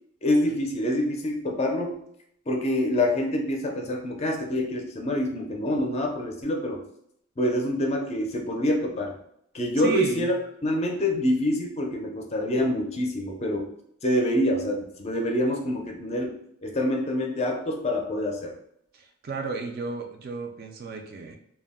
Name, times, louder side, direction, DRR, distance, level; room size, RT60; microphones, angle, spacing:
voice 1, 0.2-2.0 2.5-6.8 7.4-9.2 9.5-10.3 10.6-13.7 14.0-16.3 16.6-18.6, left 1 dB, 30° left, 1 dB, 0.4 m, -26 dB
voice 2, 9.8-10.3 18.9-21.4, right 4 dB, 45° right, 4 dB, 0.3 m, -34 dB
2.2 x 2.0 x 3.5 m, 0.71 s
head